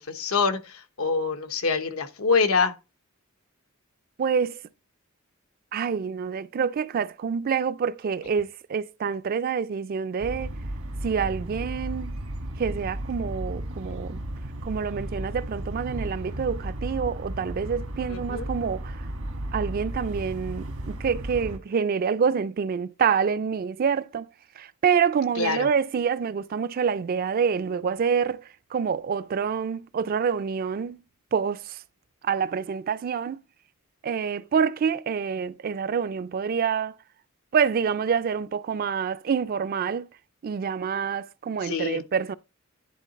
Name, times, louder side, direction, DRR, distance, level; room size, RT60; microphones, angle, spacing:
voice 1, 0.0-2.7 18.1-18.5 25.4-25.7 41.6-42.0, left 4 dB, 90° left, 0.9 m, -25 dB
voice 2, 4.2-4.6 5.7-10.5 11.0-12.1 12.6-14.2 14.6-19.0 19.5-24.3 24.6-28.4 28.7-31.0 31.3-31.8 32.2-33.4 34.0-36.9 37.5-40.1 40.4-42.3, right 6 dB, 45° right, 0.3 m, -27 dB
sound 1, 10.2-21.6, right 1 dB, 80° right, 1.3 m, -34 dB
10.5 x 3.8 x 4.0 m
head